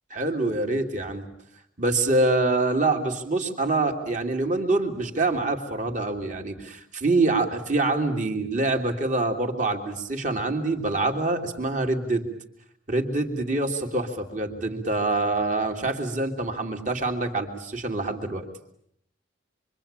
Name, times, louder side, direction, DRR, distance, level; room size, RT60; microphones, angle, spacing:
voice 1, 0.1-1.2 1.8-12.3 12.9-18.5, right 2 dB, 35° right, 4 dB, 2.9 m, -25 dB
26.5 x 25.0 x 8.9 m, 0.72 s
head